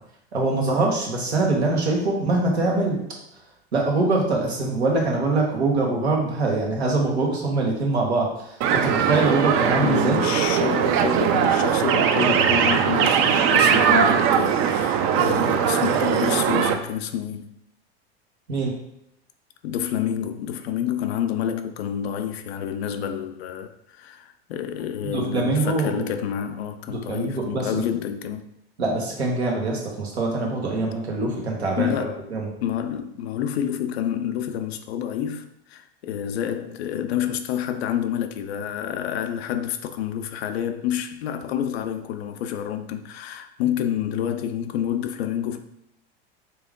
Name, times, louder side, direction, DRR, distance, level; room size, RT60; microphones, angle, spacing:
voice 1, 0.3-3.0 3.7-8.3 8.7-10.2 18.5-18.7 25.0-26.0 26.9-27.8 28.8-32.5, right 3 dB, 90° right, 1.2 m, -23 dB
sound 1, 8.6-16.7, right 8 dB, 40° right, 0.5 m, -20 dB
voice 2, 9.8-17.5 19.6-28.5 31.8-32.3 32.6-45.6, left 9 dB, 75° left, 0.5 m, -28 dB
3.5 x 2.9 x 3.7 m
hypercardioid pair, 90°, 32 cm